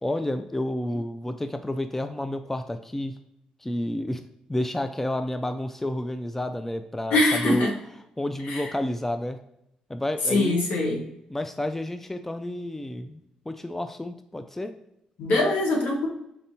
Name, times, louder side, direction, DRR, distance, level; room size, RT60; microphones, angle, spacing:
voice 1, 0.0-3.1 3.6-4.2 4.5-7.7 8.2-9.4 9.9-10.6 11.3-13.2 13.5-14.7, left 1 dB, 10° left, 8 dB, 0.4 m, -30 dB
voice 2, 7.1-7.7 8.5-8.7 10.3-11.0 15.2-16.1, left 2 dB, 75° left, -1 dB, 1.2 m, -23 dB
4.3 x 4.1 x 2.7 m, 0.81 s
supercardioid pair, 55°, 3 cm